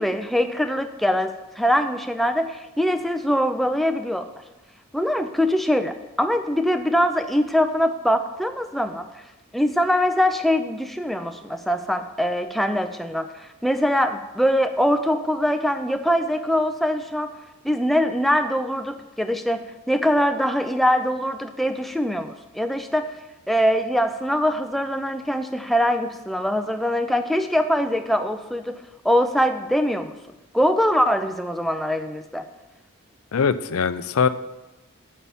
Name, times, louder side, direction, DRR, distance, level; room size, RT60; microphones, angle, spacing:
voice 1, 0.0-4.3 4.9-9.1 9.5-17.3 17.6-23.1 23.5-28.8 29.0-30.1 30.5-32.5, equal, ahead, 7 dB, 0.4 m, -23 dB
voice 2, 33.3-34.3, left 6 dB, 80° left, 13 dB, 0.5 m, -21 dB
7.4 x 5.5 x 7.0 m, 1.0 s
head